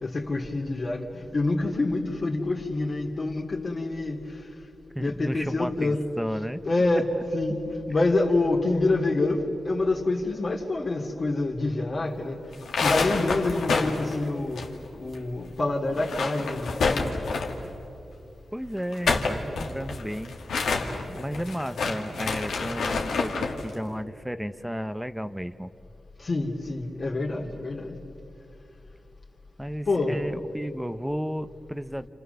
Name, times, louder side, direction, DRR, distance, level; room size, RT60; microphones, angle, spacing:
voice 1, 0.0-4.4 5.0-6.0 6.6-12.4 12.8-14.6 14.9-17.1 26.2-28.0 29.9-30.2, left 2 dB, 50° left, -1 dB, 3.0 m, -27 dB
voice 2, 4.9-6.6 6.9-7.0 18.5-20.3 21.1-25.7 29.6-32.1, equal, 5° right, 11 dB, 0.9 m, -33 dB
sound 1, 12.5-15.2 15.4-15.5 15.9-17.7 18.8-23.6, left 4 dB, 85° left, 2.3 m, -28 dB
29.0 x 28.5 x 6.9 m, 2.8 s
cardioid pair, 60°, 0 cm